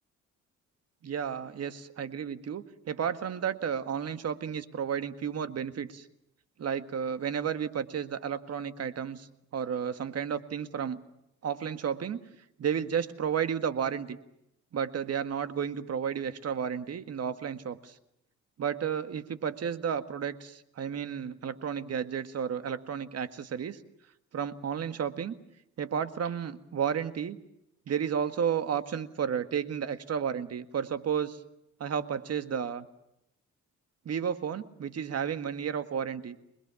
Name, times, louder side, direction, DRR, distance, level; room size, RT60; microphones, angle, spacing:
voice 1, 1.0-6.1 6.6-9.3 9.5-11.0 11.4-12.2 12.6-14.2 14.7-17.9 18.6-23.8 24.3-25.4 25.8-27.4 27.9-31.4 31.8-32.9 34.1-36.4, right 7 dB, 55° right, 11 dB, 1.8 m, -32 dB
26.5 x 22.0 x 7.1 m, 0.81 s
cardioid pair, 90°, 30 cm